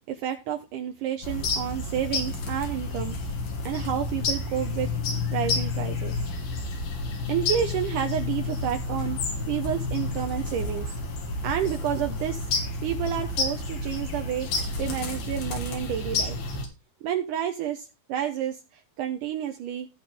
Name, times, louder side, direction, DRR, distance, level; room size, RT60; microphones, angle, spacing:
voice 1, 0.1-3.2 3.6-6.3 7.3-9.2 9.5-10.9 11.4-12.5 12.8-14.5 14.8-16.4 17.0-19.9, right 10 dB, 70° right, 5 dB, 2.2 m, -30 dB
sound 1, 1.2-16.7, left 3 dB, 70° left, 4.1 m, -30 dB
17.0 x 5.7 x 3.5 m, 0.28 s
omnidirectional pair, 4.3 m